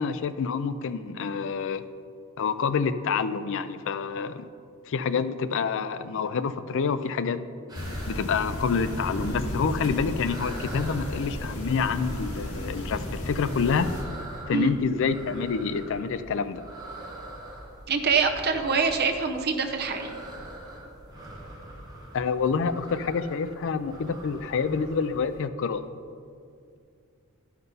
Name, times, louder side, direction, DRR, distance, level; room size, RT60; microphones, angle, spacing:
voice 1, 0.0-1.8 2.4-4.5 4.9-7.4 8.1-13.9 14.5-16.6 22.1-25.8, left 5 dB, 65° left, 13 dB, 0.4 m, -27 dB
sound 1, 7.7-14.0, left 1 dB, 80° left, 1.9 m, -34 dB
sound 2, 7.7-25.4, right 1 dB, 20° right, 1.6 m, -44 dB
voice 2, 17.9-20.1, right 5 dB, 50° right, 5 dB, 0.8 m, -25 dB
12.0 x 5.8 x 5.4 m, 2.4 s
head